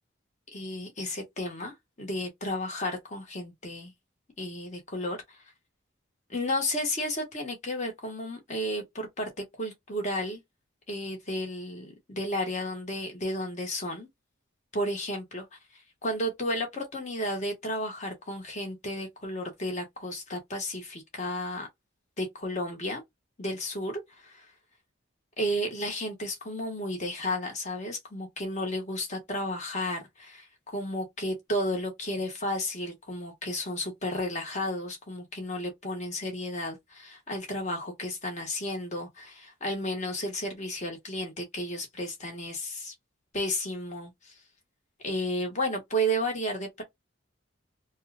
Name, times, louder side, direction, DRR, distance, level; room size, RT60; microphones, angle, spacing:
voice 1, 0.5-3.9 4.4-5.4 6.3-9.3 9.6-10.4 10.9-14.1 14.7-15.5 15.7-21.7 22.2-23.0 23.4-24.5 25.4-42.9 43.3-44.4 45.0-46.8, equal, 35° left, 1.3 m, -33 dB
4.1 x 2.3 x 2.3 m
head